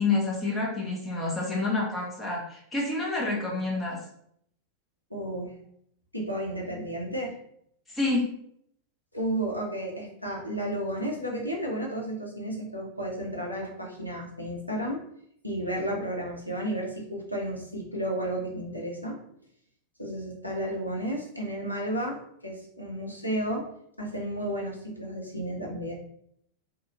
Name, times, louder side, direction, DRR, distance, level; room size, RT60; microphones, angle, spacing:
voice 1, 0.0-4.0 7.9-8.3, left 3 dB, 10° left, -4 dB, 0.9 m, -28 dB
voice 2, 5.1-5.5 6.1-7.4 9.1-15.0 15.4-19.2 20.0-23.7 24.0-25.9, right 1 dB, 90° left, -2 dB, 0.6 m, -32 dB
2.6 x 2.5 x 2.8 m, 0.70 s
figure-of-eight pair, 90°, 0 cm